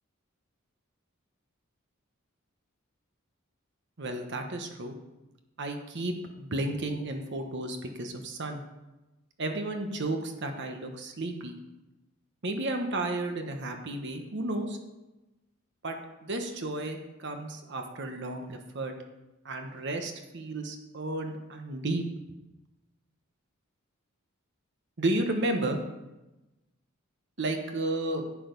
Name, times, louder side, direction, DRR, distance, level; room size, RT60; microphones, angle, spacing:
voice 1, 4.0-4.9 5.6-8.6 9.4-11.6 12.4-14.8 15.8-18.9 19.4-22.0 25.0-25.8 27.4-28.3, right 2 dB, 55° right, 5 dB, 1.1 m, -32 dB
11.0 x 8.1 x 5.3 m, 1.0 s
head